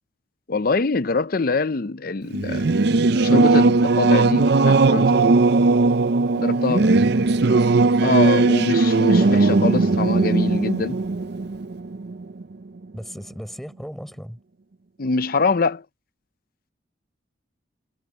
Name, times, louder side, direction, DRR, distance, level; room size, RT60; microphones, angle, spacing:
voice 1, 0.5-2.6 3.1-5.2 6.4-6.9 8.0-11.0 15.0-15.8, left 3 dB, 45° left, 0.6 m, -24 dB
Singing / Musical instrument, 2.3-12.4, right 3 dB, 55° right, 0.5 m, -18 dB
voice 2, 8.0-8.5 12.9-14.4, equal, ahead, 4.4 m, -37 dB
head